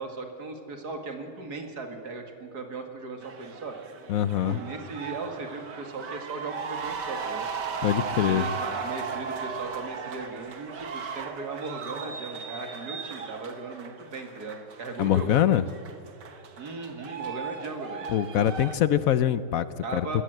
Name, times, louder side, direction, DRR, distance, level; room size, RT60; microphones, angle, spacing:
voice 1, 0.0-3.8 4.3-7.5 8.1-15.6 16.6-18.1 18.3-18.6 19.8-20.2, right 3 dB, 65° right, 5 dB, 2.6 m, -37 dB
sound 1, 3.2-18.8, right 5 dB, 80° right, 2.1 m, -37 dB
voice 2, 4.1-4.6 7.8-8.5 15.0-15.6 18.1-19.7 19.9-20.2, left 11 dB, 65° left, 15 dB, 0.9 m, -23 dB
22.0 x 18.0 x 7.8 m, 2.7 s
omnidirectional pair, 1.8 m